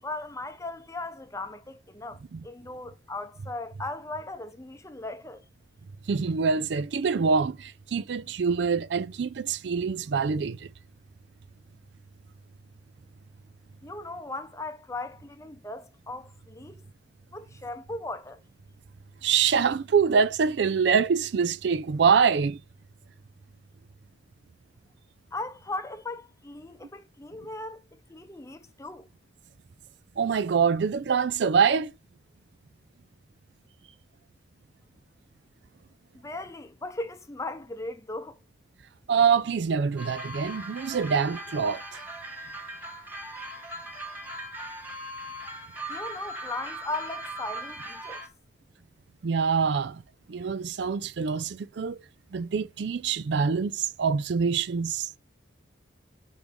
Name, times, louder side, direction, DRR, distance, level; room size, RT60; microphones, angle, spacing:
voice 1, 0.0-5.4 13.8-16.8 17.3-18.4 25.3-29.1 36.1-38.4 45.9-48.2, left 2 dB, 15° left, 0.6 m, -38 dB
voice 2, 6.1-10.7 19.2-22.6 30.2-31.9 39.1-42.0 49.2-50.0 50.3-52.0 52.3-55.1, right 6 dB, 60° right, 0.4 m, -25 dB
sound 1, 40.0-48.3, right 1 dB, 10° right, 1.3 m, -39 dB
5.3 x 5.2 x 6.0 m
head